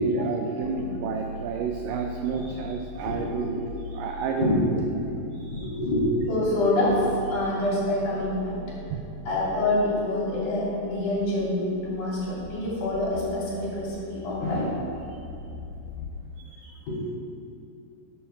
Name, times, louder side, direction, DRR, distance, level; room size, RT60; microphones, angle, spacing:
voice 1, 0.0-3.6 3.9-4.5 5.4-5.7 8.9-9.0 15.1-15.2 16.4-16.7, right 5 dB, 85° right, 3 dB, 1.9 m, -31 dB
sound 1, 0.6-16.2, left 2 dB, 80° left, 2.0 m, -41 dB
voice 2, 3.1-3.5 4.4-5.0 5.6-7.1 7.3-8.6 9.3-14.7 16.9-17.0, left 1 dB, 55° left, -7 dB, 3.9 m, -26 dB
10.5 x 7.4 x 4.4 m, 2.7 s
omnidirectional pair, 4.5 m